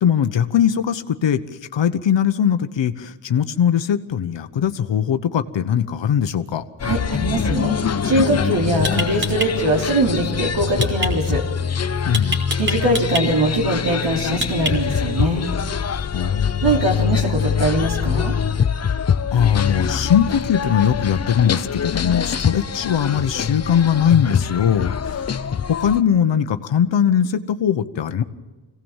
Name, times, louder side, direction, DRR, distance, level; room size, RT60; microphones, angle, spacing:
voice 1, 0.0-1.4 1.7-6.6 12.1-12.4 16.1-16.6 19.3-25.4 25.8-28.2, left 8 dB, 70° left, 10 dB, 1.2 m, -20 dB
sound 1, 6.8-26.0, left 7 dB, 35° left, 0.7 m, -24 dB
voice 2, 6.8-7.8 8.0-11.4 12.6-15.5 16.6-18.3, right 1 dB, 70° right, 0 dB, 3.5 m, -21 dB
sound 2, 8.8-9.5 10.8-11.1 12.1-13.2 14.4-15.0, right 1 dB, 25° right, 2.7 m, -25 dB
25.5 x 17.5 x 7.3 m, 1.3 s
wide cardioid pair, 150°, 45 cm